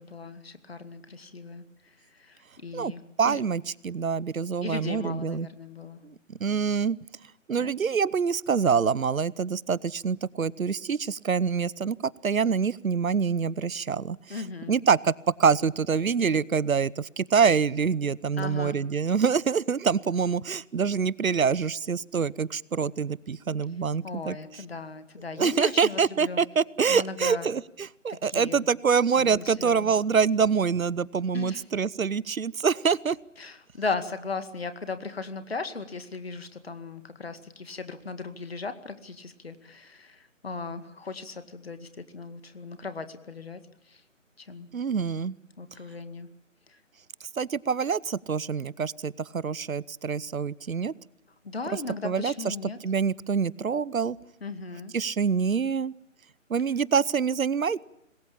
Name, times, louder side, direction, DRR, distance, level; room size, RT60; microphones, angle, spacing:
voice 1, 0.0-3.4 4.6-6.0 7.5-7.7 14.3-14.7 18.4-18.8 24.0-26.4 26.9-27.5 28.2-28.7 29.2-30.0 31.3-31.6 33.4-43.6 43.9-44.0 44.4-44.7 45.6-46.3 46.7-46.8 51.4-52.8 54.4-54.9, left 4 dB, 50° left, 10 dB, 2.2 m, -37 dB
voice 2, 3.2-5.5 6.3-7.0 7.5-14.2 14.7-15.1 15.4-24.4 25.4-33.2 44.7-45.3 47.4-50.9 52.0-52.5 52.8-54.2 54.9-55.9 56.5-57.8, right 6 dB, 85° right, 22 dB, 1.0 m, -25 dB
26.5 x 21.0 x 8.7 m, 0.77 s
figure-of-eight pair, 175°, 40 cm